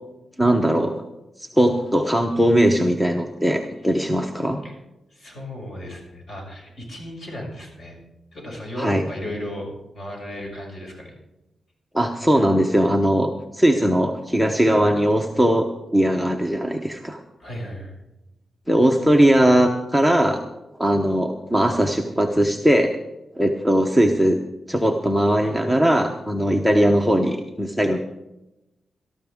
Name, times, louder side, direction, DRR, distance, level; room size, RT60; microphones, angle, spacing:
voice 1, 0.4-0.9 1.4-4.6 8.8-9.0 11.9-17.2 18.7-20.4 20.8-23.0 23.4-24.4 24.7-28.0, equal, 5° left, 4 dB, 0.8 m, -19 dB
voice 2, 5.1-8.0 8.3-9.7 9.9-11.1 17.4-18.0, left 1 dB, 45° left, 0 dB, 6.0 m, -35 dB
18.5 x 13.5 x 3.6 m, 0.95 s
wide cardioid pair, 155°, 0 cm